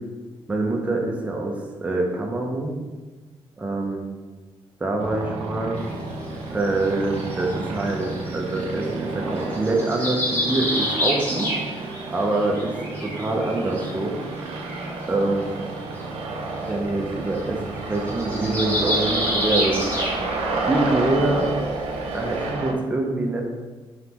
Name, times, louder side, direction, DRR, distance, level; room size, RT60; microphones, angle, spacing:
voice 1, 0.5-2.7 3.6-4.0 4.8-5.8 6.5-11.5 12.1-12.7 13.0-14.2 15.1-15.5 16.6-19.9 20.7-21.5 22.1-23.4, right 2 dB, 15° right, 0 dB, 0.5 m, -25 dB
sound 1, 5.0-22.7, right 3 dB, 80° right, 0.5 m, -31 dB
sound 2, 5.8-5.9 6.6-8.9 9.4-12.0 12.3-13.9 14.4-14.5 14.7-14.9 16.0-16.1 16.3-16.4 16.7-16.9 17.2-17.4 17.7-20.6 20.9-21.0 21.4-21.5 22.1-22.2, left 1 dB, 15° left, 1.5 m, -28 dB
3.9 x 3.6 x 2.9 m, 1.3 s
cardioid pair, 155°, 10 cm